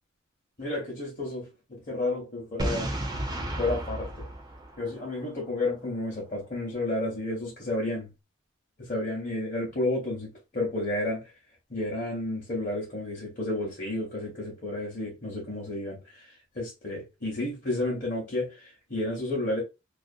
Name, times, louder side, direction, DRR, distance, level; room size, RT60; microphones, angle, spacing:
voice 1, 0.6-2.9 3.6-4.3 4.8-8.1 8.8-11.3 11.7-19.6, left 2 dB, 40° left, 0.7 m, -31 dB
Boom, 2.6-5.5, right 1 dB, 20° right, 0.4 m, -33 dB
2.4 x 2.1 x 2.5 m
head